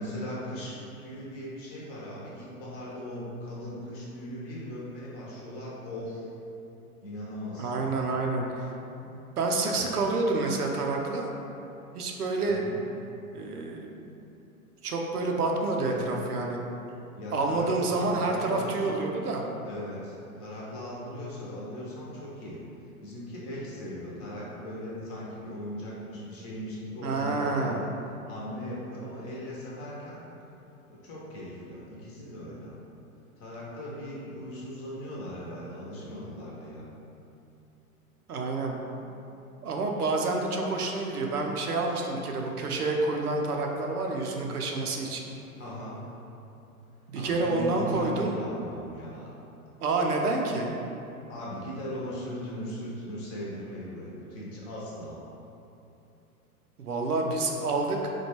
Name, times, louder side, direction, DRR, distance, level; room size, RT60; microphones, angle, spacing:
voice 1, 0.0-6.3 7.0-8.3 12.5-12.8 15.8-16.1 17.1-19.1 19.6-22.6 23.0-27.9 28.3-30.2 30.9-32.7 33.4-36.8 45.6-46.0 47.1-49.3 51.3-55.2, left 1 dB, 30° left, -6 dB, 0.9 m, -38 dB
voice 2, 7.6-8.7 9.0-11.3 11.9-12.6 13.3-14.1 14.8-16.6 17.3-19.4 27.0-27.8 38.3-38.8 39.6-45.3 47.1-48.3 49.8-50.7 56.8-58.0, right 3 dB, 80° right, 1 dB, 0.6 m, -28 dB
4.4 x 2.3 x 2.9 m, 2.8 s
figure-of-eight pair, 95°, 45 cm